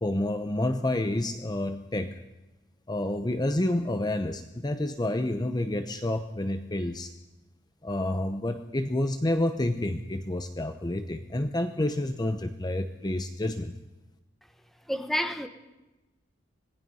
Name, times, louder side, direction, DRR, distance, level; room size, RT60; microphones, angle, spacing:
voice 1, 0.0-2.2 2.9-7.1 7.8-13.7, left 1 dB, 20° left, 0.8 m, -29 dB
voice 2, 14.9-15.5, equal, ahead, 1.2 m, -29 dB
26.0 x 19.0 x 5.6 m
head